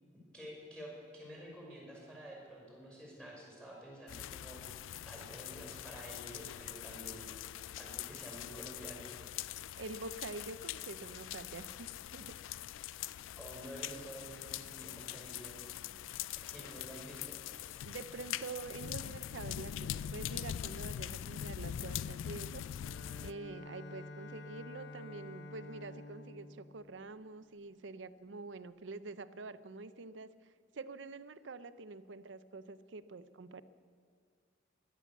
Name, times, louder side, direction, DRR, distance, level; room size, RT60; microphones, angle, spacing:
voice 1, 0.3-7.3 7.7-9.1 13.3-15.6 16.3-17.4, equal, 5° left, -3 dB, 5.5 m, -49 dB
sound 1, 4.1-23.3, left 11 dB, 90° left, 0.3 m, -43 dB
voice 2, 9.8-12.3 17.8-22.6 23.2-30.3 30.7-33.6, right 3 dB, 70° right, 14 dB, 0.6 m, -46 dB
Bowed string instrument, 22.8-27.8, left 1 dB, 60° left, 1.1 m, -50 dB
16.5 x 11.5 x 7.2 m, 2.1 s
head